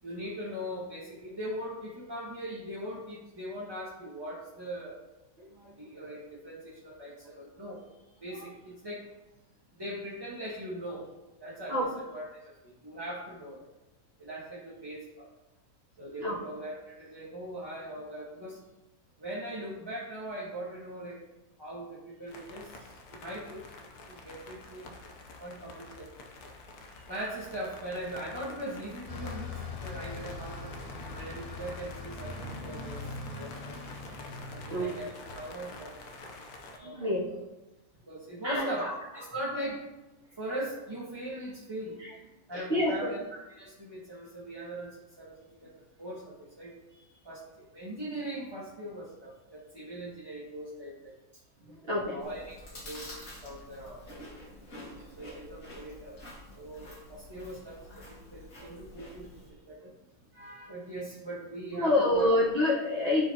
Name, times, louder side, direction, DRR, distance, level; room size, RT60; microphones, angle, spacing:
voice 1, 0.0-5.0 5.8-7.8 8.2-9.0 9.8-11.0 11.4-11.8 12.1-13.6 14.2-15.3 16.0-18.6 19.2-21.2 21.6-23.7 24.1-24.9 25.4-26.1 27.0-30.7 31.1-33.0 33.3-33.8 34.5-35.9 36.6-37.4 38.1-39.8 40.4-42.0 42.5-45.7 46.0-51.1 52.1-54.0 55.1-56.2 56.6-59.9 60.3-62.3, right 1 dB, 15° right, -6 dB, 1.4 m, -40 dB
voice 2, 5.4-5.7 11.7-11.9 16.2-16.4 34.7-34.9 36.8-37.2 38.4-38.9 42.0-42.1 42.5-43.1 51.6-52.2 61.7-63.2, left 1 dB, 40° right, -6 dB, 2.6 m, -28 dB
sound 1, 22.3-36.8, left 2 dB, 85° left, 1.4 m, -48 dB
Bus, 29.1-35.0, left 3 dB, 35° left, 0.6 m, -41 dB
Chewing mastication, 52.2-59.5, left 1 dB, 65° left, 2.4 m, -48 dB
13.0 x 5.0 x 2.9 m, 1.0 s
omnidirectional pair, 1.6 m